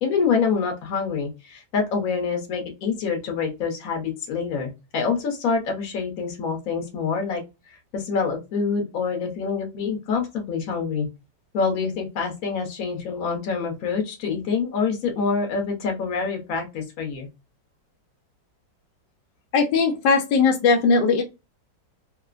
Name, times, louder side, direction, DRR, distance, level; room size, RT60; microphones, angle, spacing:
voice 1, 0.0-7.4 7.7-11.1 11.5-17.3, left 5 dB, 55° left, 3 dB, 1.2 m, -26 dB
voice 2, 19.5-21.2, left 4 dB, 75° left, 3 dB, 1.2 m, -19 dB
3.2 x 2.0 x 2.3 m, 0.26 s
omnidirectional pair, 2.0 m